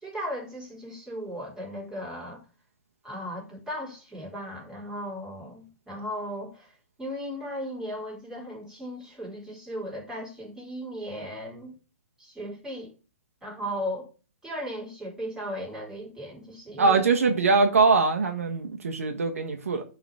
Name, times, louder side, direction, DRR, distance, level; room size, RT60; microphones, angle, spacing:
voice 1, 0.0-2.4 3.0-11.7 12.2-12.9 13.4-14.1 14.4-17.1, equal, 5° right, 4.0 m, -36 dB
voice 2, 16.8-19.8, right 4 dB, 75° right, 1.4 m, -22 dB
11.5 x 4.0 x 4.8 m
figure-of-eight pair, 125°, 8 cm